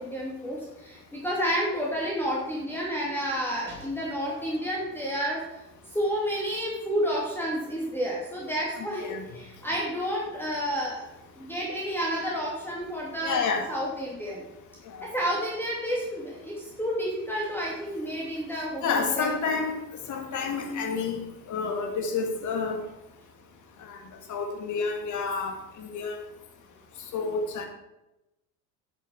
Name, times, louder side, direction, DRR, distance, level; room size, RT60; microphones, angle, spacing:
voice 1, 0.0-5.4 5.9-11.1 11.4-13.4 13.7-14.4 15.0-19.3, equal, 5° left, -5 dB, 2.6 m, -30 dB
voice 2, 8.8-9.2 13.2-13.7 18.8-19.8 20.1-21.2 21.5-22.8 23.9-24.0 24.3-26.2 27.1-27.7, left 5 dB, 35° left, 4 dB, 2.1 m, -29 dB
10.5 x 6.6 x 4.9 m, 0.94 s
figure-of-eight pair, 75°, 49 cm